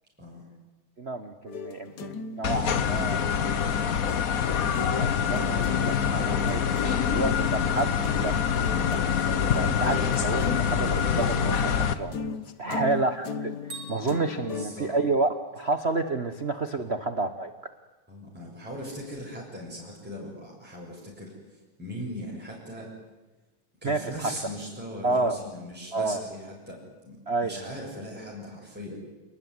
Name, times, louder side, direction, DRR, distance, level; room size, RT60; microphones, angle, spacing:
voice 1, 1.0-3.3 5.0-8.4 8.8-9.0 9.3-12.2 12.6-17.5 23.8-24.3 25.0-25.4 25.9-26.2 27.3-27.6, right 3 dB, 85° right, 9 dB, 0.5 m, -30 dB
sound 1, 1.5-4.2 4.5-14.7, left 5 dB, 55° left, 1.2 m, -38 dB
sound 2, 2.4-11.9, left 7 dB, 80° left, 0.7 m, -25 dB
voice 2, 12.7-13.0 14.5-14.9 16.8-16.9 18.1-22.9 23.8-29.0, equal, 5° right, -4 dB, 7.0 m, -40 dB
Bell, 13.7-15.7, right 3 dB, 40° right, 5.2 m, -46 dB
28.5 x 20.0 x 9.7 m, 1.1 s
omnidirectional pair, 3.3 m